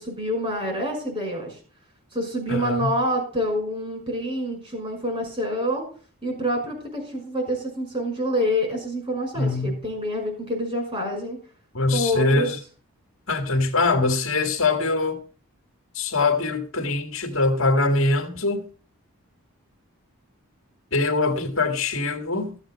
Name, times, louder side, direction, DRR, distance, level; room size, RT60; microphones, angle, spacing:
voice 1, 0.0-1.6 2.1-5.9 6.2-11.4 11.9-12.5, equal, 25° right, 5.6 m, -27 dB
voice 2, 2.5-2.9 9.3-9.8 11.7-12.6 13.3-15.2 15.9-18.7 20.9-22.6, left 3 dB, 65° left, 2.0 m, -23 dB
15.0 x 7.3 x 6.1 m
head